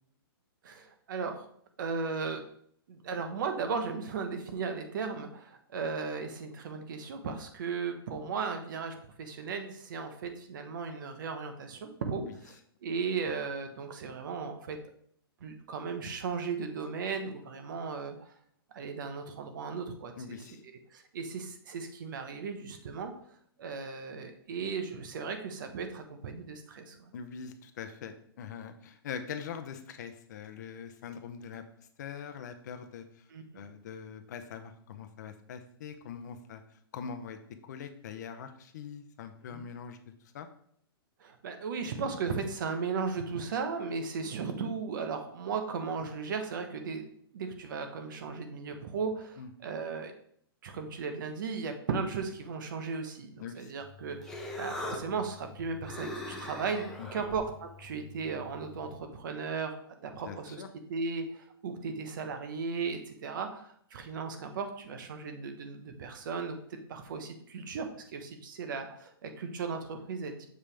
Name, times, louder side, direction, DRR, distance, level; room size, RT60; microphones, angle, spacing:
voice 1, 0.6-1.5 1.8-2.4 2.9-12.5 12.8-14.8 15.4-18.3 18.7-20.4 20.9-23.1 23.6-27.1 33.3-33.7 39.5-39.7 41.2-47.1 47.3-50.1 50.6-60.6 60.9-70.5, right 5 dB, 55° right, 6 dB, 1.1 m, -36 dB
voice 2, 20.2-20.6 27.1-31.6 32.0-33.2 33.5-36.6 36.9-40.0 40.3-40.5 49.4-49.5 53.4-53.7 57.0-57.3 60.2-60.7, left 7 dB, 45° left, 8 dB, 0.7 m, -43 dB
Human voice, 53.8-59.0, left 2 dB, 5° left, 0.7 m, -42 dB
7.1 x 5.3 x 3.4 m, 0.65 s
hypercardioid pair, 160°, 13 cm